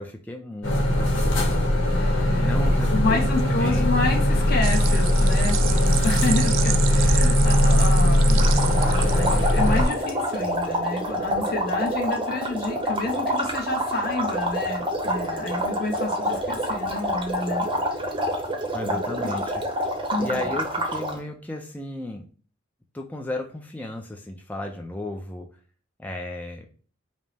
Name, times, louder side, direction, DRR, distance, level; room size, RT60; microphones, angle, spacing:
voice 1, 0.0-1.8 2.4-3.9 18.7-19.6 20.2-22.3 22.9-25.5 26.0-26.7, left 1 dB, 10° left, 2 dB, 0.4 m, -34 dB
sound 1, 0.6-9.8, left 1 dB, 80° left, 1.4 m, -20 dB
voice 2, 2.0-8.5 8.9-17.6 18.9-19.3 20.1-20.5, left 2 dB, 50° left, 2 dB, 0.9 m, -29 dB
sound 2, 4.6-10.1, right 12 dB, 70° right, 0.3 m, -31 dB
sound 3, 8.4-21.2, equal, 25° right, 0.7 m, -27 dB
5.2 x 2.0 x 3.3 m, 0.41 s
head